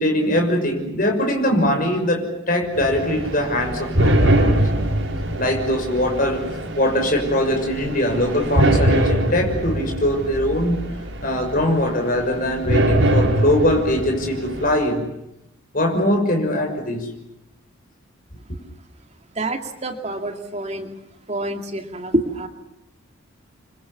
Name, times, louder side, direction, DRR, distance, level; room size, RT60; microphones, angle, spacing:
voice 1, 0.0-4.5 5.4-6.5 6.7-10.9 11.2-15.0 15.7-17.1, left 1 dB, 40° left, 2 dB, 6.2 m, -21 dB
sound 1, 2.7-14.7, right 1 dB, 70° right, 6.4 m, -23 dB
voice 2, 19.3-20.9 21.3-22.5, right 1 dB, 30° right, 5 dB, 2.5 m, -26 dB
29.0 x 25.5 x 7.3 m, 0.83 s
head